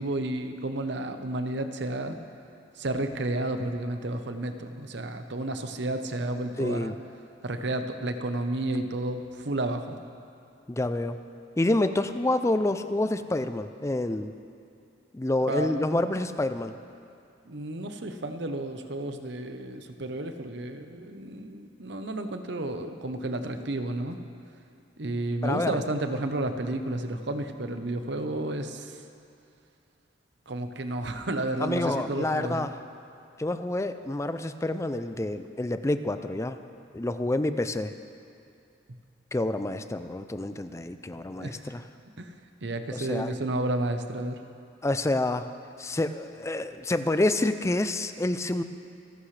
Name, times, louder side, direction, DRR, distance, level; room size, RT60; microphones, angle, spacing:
voice 1, 0.0-2.2 2.7-7.0 7.4-10.0 15.5-16.0 17.5-24.2 25.0-29.0 30.5-32.7 38.9-39.0 41.1-41.7 42.2-42.3 42.6-44.4, right 1 dB, 60° right, 7 dB, 0.9 m, -32 dB
voice 2, 6.6-7.0 10.7-11.2 11.6-14.3 15.1-16.8 25.4-25.8 31.6-32.7 33.4-36.6 36.9-37.9 39.3-41.8 42.9-43.3 44.8-45.5 45.8-48.6, left 2 dB, 15° left, 10 dB, 0.4 m, -28 dB
28.0 x 11.5 x 3.3 m, 2.6 s
head